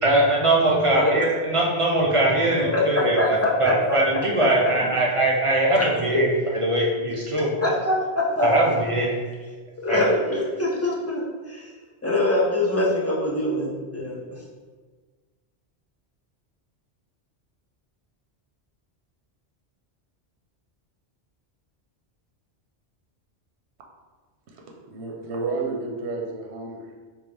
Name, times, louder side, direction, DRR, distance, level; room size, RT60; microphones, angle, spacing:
voice 1, 0.0-6.3 6.5-7.5 8.4-9.1 9.9-10.2, right 1 dB, 50° right, -3 dB, 0.4 m, -21 dB
voice 2, 0.9-1.3 2.7-4.0 5.7-5.9 7.6-8.5 9.8-11.2 11.5-11.7 12.0-14.4, left 1 dB, 25° left, -4 dB, 0.4 m, -24 dB
voice 3, 24.5-27.0, right 3 dB, 90° right, 1 dB, 0.9 m, -31 dB
3.6 x 2.6 x 3.3 m, 1.4 s
omnidirectional pair, 1.1 m